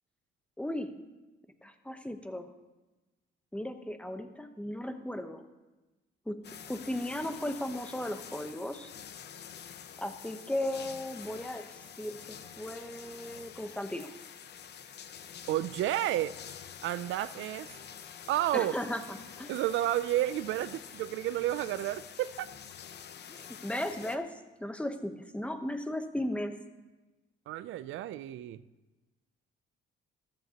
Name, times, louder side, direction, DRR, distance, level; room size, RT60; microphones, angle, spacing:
voice 1, 0.6-1.0 1.6-2.5 3.5-5.4 6.3-8.9 10.0-14.1 18.5-19.5 23.3-26.6, left 1 dB, 5° left, 8 dB, 0.9 m, -36 dB
sound 1, 6.4-24.2, left 8 dB, 60° left, 0.8 m, -47 dB
voice 2, 15.5-16.3 16.8-17.7 18.3-18.8 19.5-22.5 27.5-28.6, right 13 dB, 80° right, 15 dB, 0.4 m, -31 dB
14.0 x 12.5 x 2.9 m, 1.1 s
cardioid pair, 90°, 20 cm